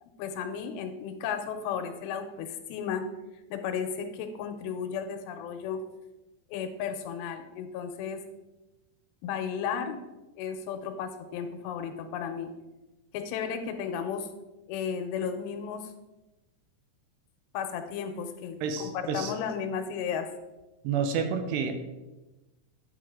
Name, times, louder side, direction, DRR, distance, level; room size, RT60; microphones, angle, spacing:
voice 1, 0.0-3.0 3.5-5.8 6.5-8.2 9.2-10.0 10.4-12.5 13.1-14.3 14.7-15.9 17.5-20.3, left 7 dB, 90° left, 7 dB, 2.9 m, -34 dB
voice 2, 18.6-19.3 20.8-21.7, right 6 dB, 85° right, 7 dB, 2.9 m, -29 dB
9.8 x 5.7 x 3.7 m, 1.1 s
omnidirectional pair, 4.9 m